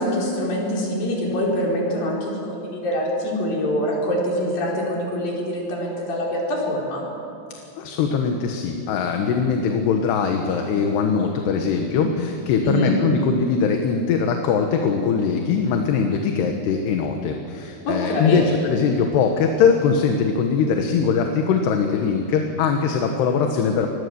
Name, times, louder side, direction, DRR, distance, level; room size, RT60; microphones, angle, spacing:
voice 1, 0.0-7.0 12.6-13.0 17.8-18.4, equal, 55° left, -3 dB, 6.3 m, -24 dB
voice 2, 7.8-23.9, left 6 dB, 75° left, 4 dB, 3.3 m, -21 dB
26.0 x 21.0 x 7.0 m, 2.6 s
omnidirectional pair, 4.9 m